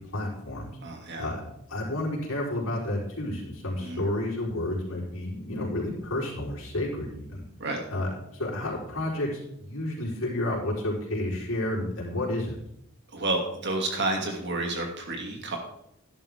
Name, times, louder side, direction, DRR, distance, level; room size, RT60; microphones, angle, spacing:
voice 1, 0.0-0.7 1.2-1.4 1.7-7.4 7.9-12.6, left 1 dB, 90° left, -4 dB, 4.6 m, -31 dB
voice 2, 0.8-1.3 3.8-4.1 7.6-7.8 13.1-15.6, right 2 dB, 55° right, 2 dB, 2.7 m, -30 dB
12.0 x 11.0 x 3.7 m, 0.76 s
head